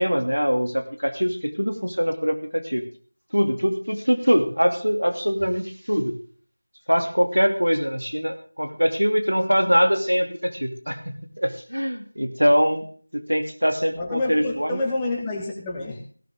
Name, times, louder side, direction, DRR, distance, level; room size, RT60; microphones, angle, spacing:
voice 1, 0.0-2.8 3.3-6.2 6.9-12.8 13.1-14.8, equal, 85° right, 6 dB, 2.7 m, -23 dB
voice 2, 14.0-16.0, left 2 dB, 10° left, -2 dB, 1.9 m, -28 dB
17.5 x 11.0 x 3.7 m, 0.43 s
figure-of-eight pair, 170°, 0 cm